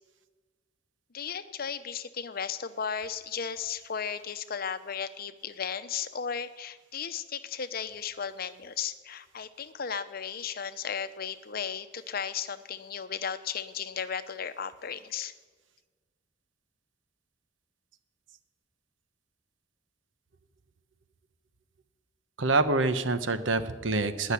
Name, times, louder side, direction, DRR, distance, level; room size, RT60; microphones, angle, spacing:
voice 1, 1.1-15.3, left 7 dB, 50° left, 12 dB, 0.7 m, -35 dB
voice 2, 22.4-24.3, right 3 dB, 80° right, 11 dB, 1.0 m, -26 dB
19.0 x 6.5 x 9.8 m, 1.4 s
head